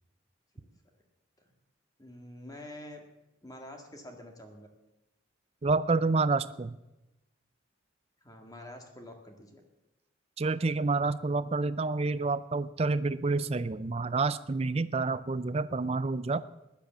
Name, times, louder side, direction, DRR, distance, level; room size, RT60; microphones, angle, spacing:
voice 1, 2.0-3.0 3.4-4.7 8.2-9.6, left 1 dB, 20° left, 3 dB, 1.8 m, -47 dB
voice 2, 5.6-6.8 10.4-16.4, right 3 dB, 30° right, 14 dB, 0.4 m, -28 dB
15.0 x 10.5 x 7.3 m, 0.97 s
head